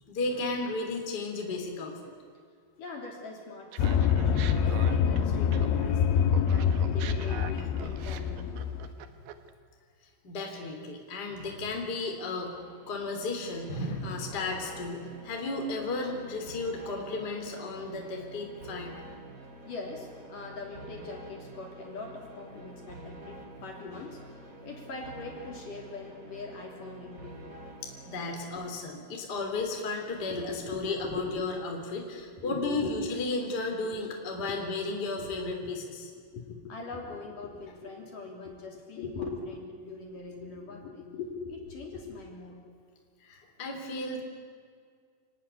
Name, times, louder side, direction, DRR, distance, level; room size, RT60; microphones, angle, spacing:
voice 1, 0.1-2.1 10.2-12.6 12.9-19.0 27.8-36.0 43.2-44.2, left 3 dB, 25° left, 2 dB, 3.2 m, -34 dB
voice 2, 2.8-8.5 19.6-27.4 28.6-28.7 30.2-31.4 32.1-33.1 33.8-34.0 34.3-34.6 35.1-35.4 35.6-35.7 36.3-42.6, left 4 dB, 50° left, 0 dB, 4.4 m, -41 dB
Laughter, 3.7-6.0 6.3-9.5, right 9 dB, 65° right, 2.8 m, -43 dB
sound 1, 3.8-8.9, left 7 dB, 85° left, 3.6 m, -26 dB
sound 2, 12.3-29.1, right 1 dB, 30° right, 1.8 m, -48 dB
28.0 x 19.0 x 10.0 m, 2.1 s
omnidirectional pair, 5.3 m